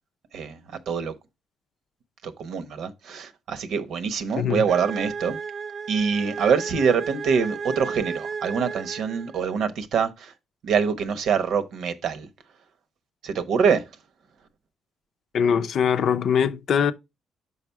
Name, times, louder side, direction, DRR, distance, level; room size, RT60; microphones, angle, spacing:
voice 1, 2.2-5.4 5.9-10.3 10.6-12.3 13.2-13.9, right 6 dB, 70° right, 0.9 m, -25 dB
sound 1, 4.7-9.5, right 5 dB, 45° right, 0.3 m, -34 dB
voice 2, 15.3-16.9, left 7 dB, 65° left, 0.5 m, -22 dB
5.7 x 4.8 x 4.6 m
cardioid pair, 90°, 0 cm